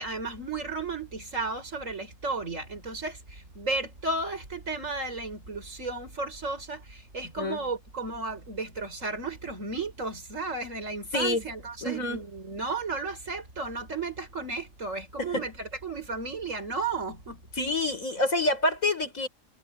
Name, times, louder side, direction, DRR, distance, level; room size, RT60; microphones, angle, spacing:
voice 1, 0.0-17.4, right 3 dB, 70° right, 5.7 m, -34 dB
voice 2, 11.1-11.4 11.8-12.2 15.2-15.5 17.6-19.3, left 2 dB, 85° left, 5.7 m, -27 dB
omnidirectional pair, 1.4 m